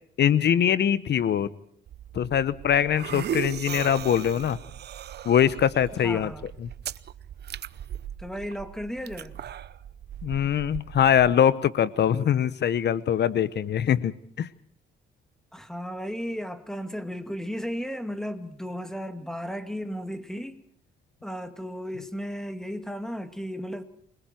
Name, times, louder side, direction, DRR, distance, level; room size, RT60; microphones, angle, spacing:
voice 1, 0.2-1.5 2.1-4.6 5.2-6.3 6.6-6.7 10.2-14.5, left 9 dB, 60° left, 1.0 m, -23 dB
sound 1, 1.9-11.4, right 10 dB, 55° right, 0.8 m, -38 dB
voice 2, 5.9-6.5 8.2-9.4 15.5-20.6 21.2-23.8, equal, 5° left, 2.3 m, -34 dB
28.0 x 21.0 x 4.5 m
cardioid pair, 90°, 20 cm